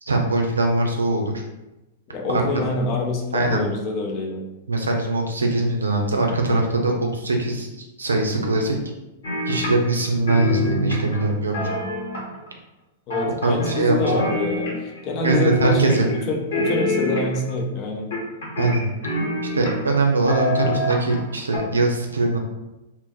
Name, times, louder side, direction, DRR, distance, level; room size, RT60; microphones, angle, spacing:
voice 1, 0.1-1.4 2.3-2.4 3.3-3.6 4.7-8.8 9.5-11.7 13.3-14.0 15.2-16.3 18.6-18.9 19.5-22.4, right 2 dB, 75° right, 2 dB, 0.5 m, -22 dB
voice 2, 2.1-4.4 13.1-18.1, left 2 dB, 40° left, 1 dB, 0.6 m, -26 dB
sound 1, 9.2-10.0 10.3-12.5 13.1-13.8 14.0-15.0 15.2-16.2 16.5-17.5 18.1-19.9 20.3-21.2 21.5-21.6, left 1 dB, 65° left, 1.1 m, -25 dB
2.6 x 2.1 x 3.9 m, 0.99 s
figure-of-eight pair, 100°, 0 cm